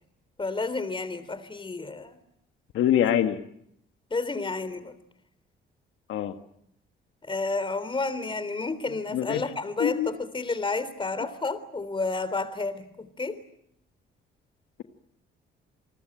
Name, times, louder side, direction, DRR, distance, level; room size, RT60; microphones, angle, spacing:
voice 1, 0.4-2.2 4.1-5.0 7.2-13.4, left 3 dB, 25° left, 14 dB, 3.6 m, -31 dB
voice 2, 2.7-3.4 6.1-6.3 9.1-9.4 9.8-10.1, left 10 dB, 85° left, 7 dB, 1.7 m, -24 dB
29.0 x 20.0 x 8.8 m, 0.74 s
cardioid pair, 90°, 20 cm